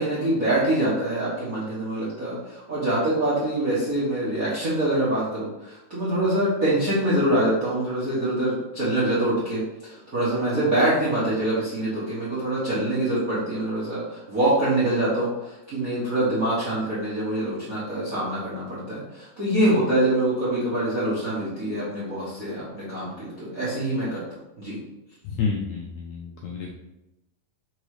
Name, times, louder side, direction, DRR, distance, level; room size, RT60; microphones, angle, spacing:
voice 1, 0.0-24.2 24.6-24.8, right 1 dB, 50° right, -9 dB, 1.0 m, -25 dB
voice 2, 25.3-26.7, left 5 dB, 80° left, -1 dB, 1.7 m, -29 dB
5.2 x 4.0 x 4.9 m, 0.95 s
omnidirectional pair, 4.0 m